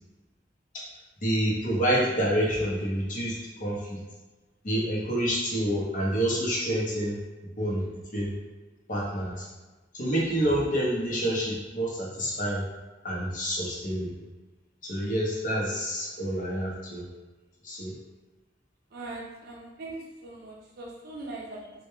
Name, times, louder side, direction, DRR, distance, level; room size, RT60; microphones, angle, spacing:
voice 1, 1.2-4.0 4.6-7.2 7.6-7.8 8.1-8.3 8.9-9.5 9.9-12.6 13.0-14.1 14.8-17.0 17.6-17.9, equal, 45° left, -5 dB, 0.7 m, -28 dB
voice 2, 18.9-19.9 20.2-21.6, right 2 dB, 55° right, -3 dB, 0.5 m, -40 dB
2.1 x 2.1 x 3.0 m, 1.2 s
head